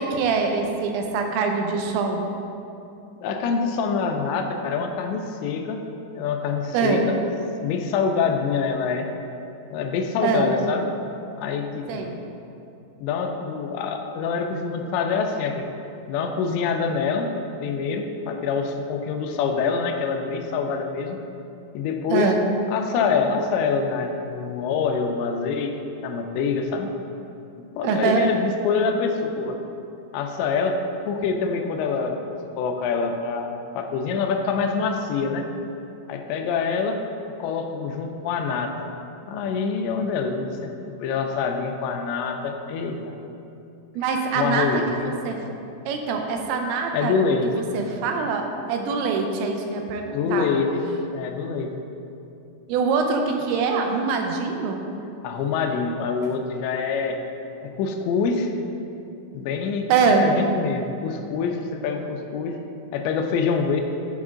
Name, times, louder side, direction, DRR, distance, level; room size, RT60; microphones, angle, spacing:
voice 1, 0.0-2.2 6.7-7.0 10.2-10.5 11.9-12.1 22.1-22.4 27.8-28.2 44.0-44.7 45.0-45.4 45.9-47.1 47.5-50.5 52.7-54.8 59.9-60.3, right 5 dB, 85° right, 3 dB, 3.0 m, -24 dB
voice 2, 3.2-5.9 6.1-7.2 7.6-9.1 9.7-10.9 11.4-12.1 13.0-15.7 16.1-21.2 21.7-22.4 22.7-26.9 27.8-29.6 30.1-30.8 31.1-32.2 32.6-35.5 36.1-37.1 37.4-38.9 39.2-43.1 44.4-45.2 46.9-47.7 50.1-50.8 51.1-51.8 55.2-57.2 57.6-58.5 59.3-62.6 62.9-63.8, left 5 dB, 85° left, 4 dB, 2.8 m, -25 dB
11.5 x 5.3 x 3.7 m, 2.7 s
omnidirectional pair, 5.1 m